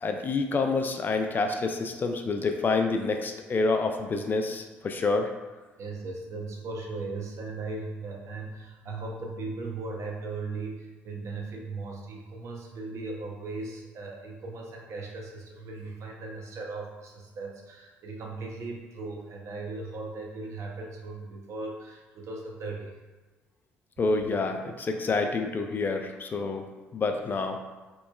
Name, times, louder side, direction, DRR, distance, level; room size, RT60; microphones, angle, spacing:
voice 1, 0.0-5.3 24.0-27.6, left 3 dB, 30° left, 4 dB, 0.3 m, -28 dB
voice 2, 5.8-23.0, right 3 dB, 50° right, 0 dB, 0.6 m, -38 dB
3.0 x 2.1 x 2.2 m, 1.3 s
hypercardioid pair, 50°, 6 cm